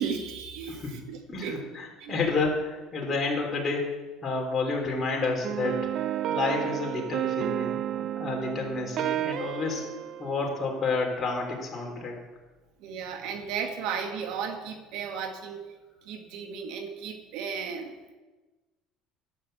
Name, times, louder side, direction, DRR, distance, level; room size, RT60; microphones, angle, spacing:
voice 1, 0.0-1.6 2.0-2.2 12.8-15.6 16.0-18.1, right 6 dB, 75° right, 5 dB, 1.2 m, -35 dB
voice 2, 0.7-1.0 1.3-5.9 6.3-9.9 10.2-12.2, left 3 dB, 30° left, -1 dB, 3.3 m, -30 dB
sound 1, 5.4-11.1, right 11 dB, 55° right, 0.4 m, -32 dB
11.5 x 6.0 x 7.8 m, 1.2 s
cardioid pair, 115°, 0 cm